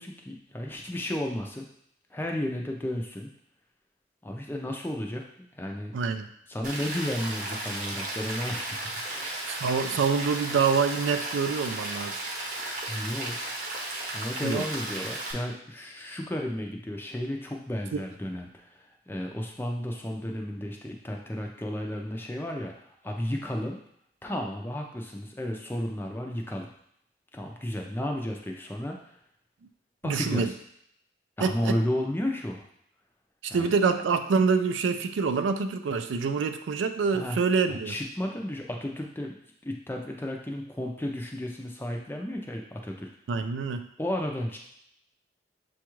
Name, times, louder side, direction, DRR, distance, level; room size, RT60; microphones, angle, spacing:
voice 1, 0.0-1.7 2.1-3.3 4.2-5.9 6.5-9.5 12.9-13.4 14.1-23.8 24.2-26.7 27.3-29.0 30.0-30.5 31.4-32.6 33.5-33.7 37.1-37.4 37.7-39.4 39.6-43.1 44.0-44.6, left 1 dB, 10° left, 1 dB, 0.4 m, -33 dB
voice 2, 5.9-6.3 9.5-12.2 14.4-14.6 30.0-30.5 31.4-31.8 33.5-38.0 43.3-43.9, right 5 dB, 85° right, 9 dB, 0.4 m, -26 dB
Rain, 6.6-15.3, right 2 dB, 45° right, 0.8 m, -34 dB
6.9 x 2.3 x 3.0 m, 0.72 s
head